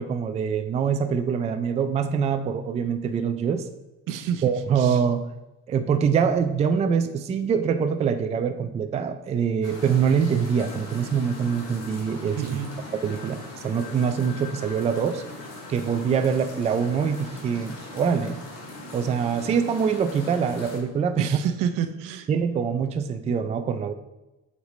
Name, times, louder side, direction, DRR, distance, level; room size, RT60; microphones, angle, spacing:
voice 1, 0.0-3.7 4.4-5.2 5.7-12.4 13.0-15.2 15.7-18.4 18.9-21.3 22.3-23.9, right 6 dB, 20° right, 7 dB, 0.3 m, -24 dB
voice 2, 4.1-5.0 12.4-12.7 21.2-22.3, right 8 dB, 85° right, 9 dB, 0.7 m, -29 dB
sound 1, 9.6-20.8, left 2 dB, 80° left, 2.4 m, -40 dB
8.0 x 6.6 x 3.1 m, 1.0 s
cardioid pair, 175°, 31 cm